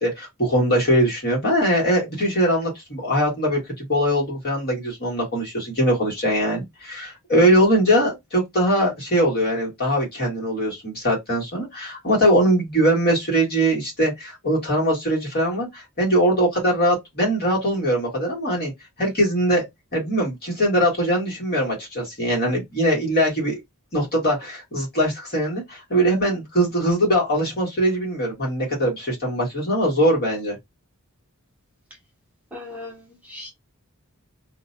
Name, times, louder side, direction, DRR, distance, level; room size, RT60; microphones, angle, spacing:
voice 1, 0.0-18.7 19.0-19.7 19.9-23.6 23.9-30.6, equal, 45° left, 1.3 m, -21 dB
voice 2, 32.5-33.5, left 2 dB, 5° right, 0.8 m, -38 dB
2.5 x 2.1 x 2.5 m
head